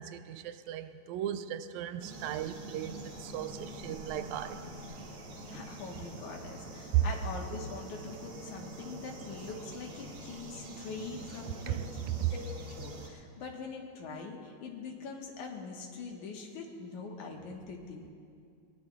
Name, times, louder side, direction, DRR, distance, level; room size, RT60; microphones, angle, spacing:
voice 1, 0.0-4.7 6.9-7.1 11.7-12.3, right 13 dB, 80° right, 1.9 m, -35 dB
sound 1, 2.0-13.1, right 1 dB, 50° right, 1.9 m, -45 dB
voice 2, 5.5-11.8 12.3-12.5 12.8-18.1, left 4 dB, 85° left, 2.9 m, -43 dB
22.5 x 19.5 x 2.4 m
omnidirectional pair, 3.4 m